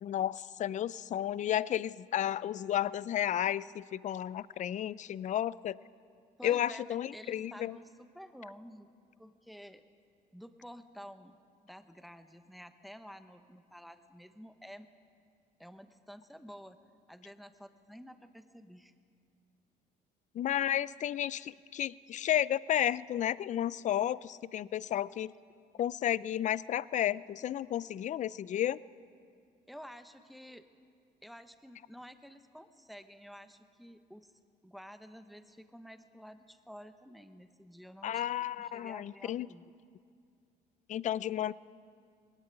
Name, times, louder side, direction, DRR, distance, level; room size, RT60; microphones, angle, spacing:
voice 1, 0.0-5.8 6.4-7.8 20.3-25.3 25.8-28.8 38.0-39.5 40.9-41.5, left 11 dB, 45° left, 20 dB, 0.5 m, -32 dB
voice 2, 6.4-8.9 9.2-9.8 10.3-11.4 11.6-14.9 15.6-16.8 17.1-18.9 29.7-30.7 31.2-34.3 34.6-38.2 38.6-39.7, equal, ahead, 9 dB, 1.1 m, -51 dB
20.5 x 16.5 x 9.7 m, 2.3 s
cardioid pair, 110°, 17 cm